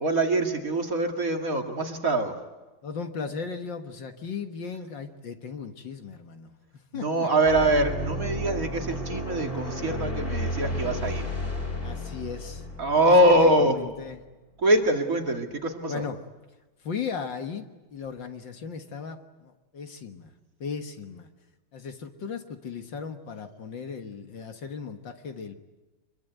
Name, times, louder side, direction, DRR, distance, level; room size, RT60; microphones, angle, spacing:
voice 1, 0.0-2.4 6.9-11.3 12.8-13.7 14.6-16.0, right 1 dB, 40° right, 4 dB, 2.5 m, -23 dB
voice 2, 2.8-7.3 11.8-12.7 13.1-14.2 15.9-16.2 16.8-20.3 20.6-21.3 21.7-25.5, left 5 dB, 60° left, 6 dB, 2.1 m, -36 dB
sound 1, 7.4-14.1, left 1 dB, 25° left, 4.5 m, -33 dB
25.5 x 22.5 x 9.2 m, 1.2 s
omnidirectional pair, 2.4 m